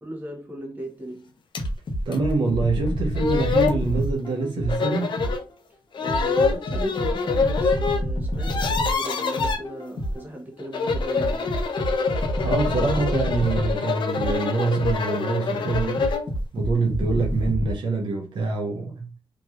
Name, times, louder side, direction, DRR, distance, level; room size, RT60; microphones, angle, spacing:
voice 1, 0.0-1.3 6.0-11.5, equal, 20° right, 1.2 m, -37 dB
sound 1, 1.5-1.7 2.1-2.2 2.9-3.0 3.2-3.8 4.7-5.4 5.9-8.0 8.3-9.6 10.6-16.3, left 5 dB, 65° left, 0.5 m, -26 dB
sound 2, 1.6-5.5 6.1-10.3 10.9-15.1 15.7-17.7, equal, 45° left, 1.0 m, -28 dB
voice 2, 2.1-5.2 12.0-12.1 12.4-16.1 16.5-19.1, right 3 dB, 65° right, 0.8 m, -25 dB
3.1 x 2.9 x 2.4 m
wide cardioid pair, 110°, 9 cm